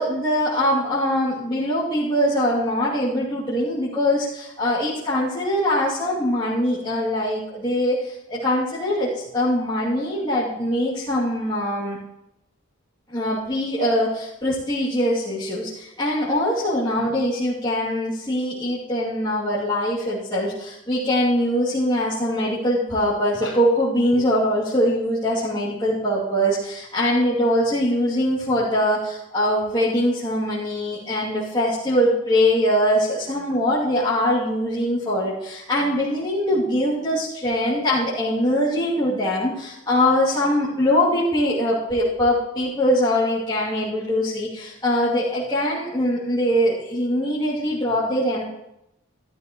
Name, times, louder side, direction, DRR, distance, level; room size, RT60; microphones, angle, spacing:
voice 1, 0.0-12.0 13.1-48.4, equal, 20° left, -11 dB, 2.6 m, -22 dB
13.0 x 12.0 x 3.1 m, 0.85 s
head